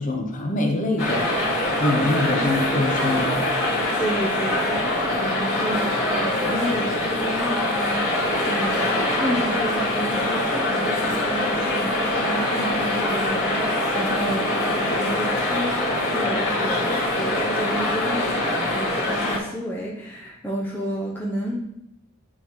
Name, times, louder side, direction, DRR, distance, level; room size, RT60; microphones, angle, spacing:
voice 1, 0.0-1.3 1.8-3.4, left 2 dB, 35° left, 2 dB, 0.8 m, -24 dB
sound 1, 1.0-19.4, left 1 dB, 65° left, 2.2 m, -23 dB
voice 2, 4.0-21.6, equal, 10° left, -5 dB, 0.6 m, -31 dB
9.1 x 3.9 x 3.1 m, 0.84 s
head